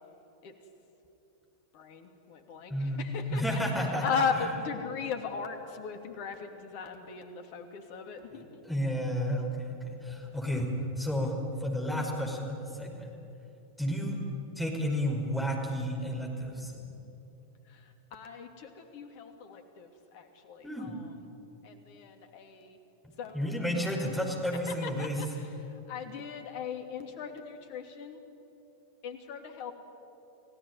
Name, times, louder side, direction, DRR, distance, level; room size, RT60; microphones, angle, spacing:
voice 1, 1.7-3.6 3.9-8.6 17.6-21.1 21.6-22.8 23.2-24.1 24.7-28.2 29.0-29.7, left 5 dB, 45° left, 6 dB, 2.8 m, -38 dB
voice 2, 2.7-4.0 8.3-10.7 11.0-13.1 13.8-14.2 14.6-16.9 20.6-21.0 23.3-25.2, equal, 5° left, 1 dB, 5.2 m, -32 dB
30.0 x 17.0 x 9.7 m, 2.9 s
figure-of-eight pair, 90°, 0 cm